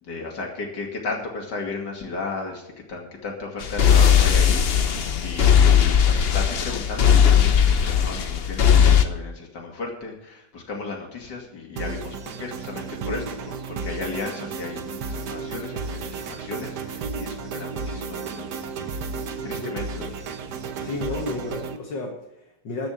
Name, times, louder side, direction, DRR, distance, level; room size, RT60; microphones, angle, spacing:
voice 1, 0.0-18.7 19.4-20.3 20.8-20.9, left 3 dB, 70° left, 0 dB, 3.1 m, -35 dB
sound 1, 3.6-9.0, left 8 dB, 50° left, 0.7 m, -18 dB
sound 2, 11.8-21.8, right 4 dB, 70° right, 1.5 m, -33 dB
voice 2, 19.4-20.1 20.8-22.9, left 2 dB, 90° left, -1 dB, 2.3 m, -33 dB
13.5 x 6.2 x 8.3 m, 0.83 s
omnidirectional pair, 1.9 m